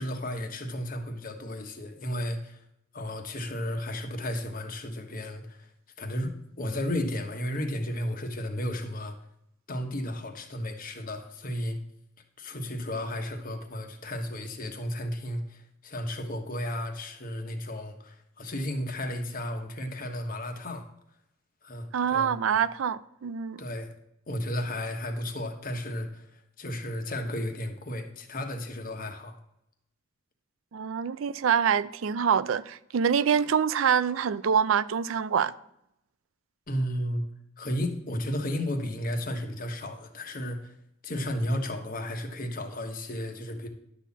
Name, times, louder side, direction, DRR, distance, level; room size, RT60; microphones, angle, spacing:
voice 1, 0.0-2.6 2.9-5.7 6.0-9.1 9.7-11.8 12.4-20.9 21.6-22.3 23.6-23.9 24.3-29.4 36.7-37.2 37.6-40.7 41.0-43.7, left 1 dB, 45° left, 1.3 m, -33 dB
voice 2, 21.9-23.6 30.7-35.5, right 7 dB, 80° right, 0.4 m, -25 dB
11.0 x 4.2 x 7.2 m
head